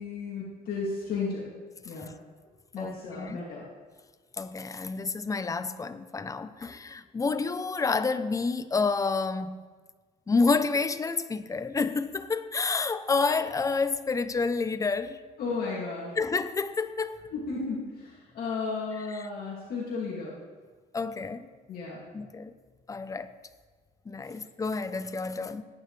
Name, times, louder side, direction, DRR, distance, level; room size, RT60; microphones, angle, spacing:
voice 1, 0.0-1.5 1.8-2.1 2.7-3.6 15.4-16.1 17.3-20.3 21.7-22.0, left 4 dB, 60° left, 2.5 m, -34 dB
voice 2, 2.8-3.4 4.4-9.6 10.3-15.2 16.2-17.2 19.1-19.3 20.9-21.5 22.1-22.5 22.9-23.3 24.1-25.6, left 4 dB, 20° left, 0.6 m, -29 dB
18.5 x 9.3 x 3.3 m
cardioid pair, 110°, 17 cm